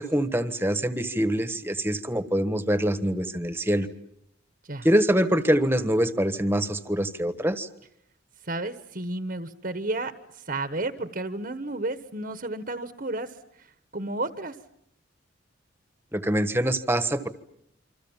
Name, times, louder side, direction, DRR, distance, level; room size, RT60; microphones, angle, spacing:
voice 1, 0.0-3.9 4.8-7.7 16.1-17.3, right 1 dB, 10° right, 10 dB, 1.4 m, -24 dB
voice 2, 8.4-13.7 13.9-14.5, right 2 dB, 45° right, 10 dB, 1.3 m, -32 dB
27.5 x 26.0 x 7.4 m, 0.74 s
head